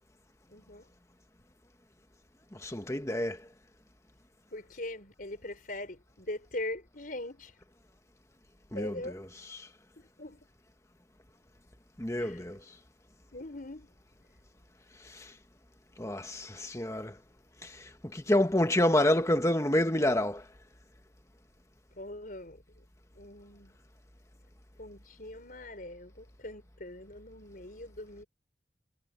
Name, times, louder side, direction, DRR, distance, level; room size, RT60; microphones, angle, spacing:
voice 1, 0.5-0.9 4.5-7.5 8.7-9.2 10.2-10.4 12.2-12.4 13.3-13.9 22.0-22.8 23.1-23.7 24.8-28.2, left 1 dB, 50° left, 4.9 m, -41 dB
voice 2, 2.5-3.4 8.7-9.7 12.0-12.6 15.1-15.3 16.0-17.2 17.6-20.4, left 1 dB, 15° left, 1.6 m, -28 dB
head